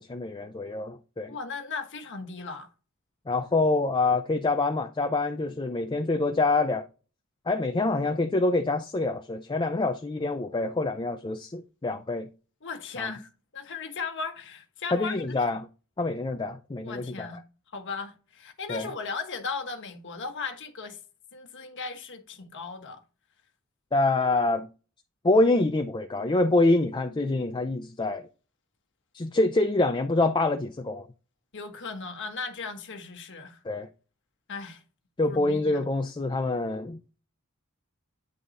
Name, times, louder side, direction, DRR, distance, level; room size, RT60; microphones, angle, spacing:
voice 1, 0.0-1.3 3.3-6.9 7.5-12.3 13.0-13.1 14.9-15.6 16.0-17.3 18.7-18.9 23.9-24.7 25.2-28.3 29.1-31.1 33.6-33.9 35.2-37.2, left 2 dB, 20° left, 0.5 m, -26 dB
voice 2, 1.3-2.7 12.6-15.5 16.8-17.4 17.7-21.0 21.3-23.0 31.5-33.6 34.5-34.8 35.3-35.9, left 4 dB, 55° left, 1.3 m, -37 dB
9.6 x 3.7 x 4.1 m
head